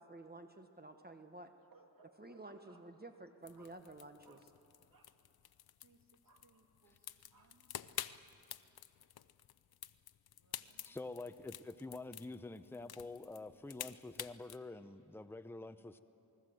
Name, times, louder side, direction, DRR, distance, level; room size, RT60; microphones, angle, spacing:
voice 1, 0.0-1.5 2.2-4.4, right 2 dB, 25° right, 7 dB, 1.2 m, -52 dB
voice 2, 1.7-2.9 3.5-3.8 4.2-4.5 4.9-5.2 5.8-7.8 8.1-8.4 10.3-11.0 15.7-16.0, right 3 dB, 60° right, 3 dB, 2.8 m, -67 dB
sound 1, 3.5-14.6, left 10 dB, 75° left, 0.7 m, -50 dB
voice 3, 10.8-16.0, left 2 dB, 5° left, 10 dB, 0.8 m, -47 dB
27.5 x 20.0 x 7.8 m, 3.0 s
cardioid pair, 65°, 38 cm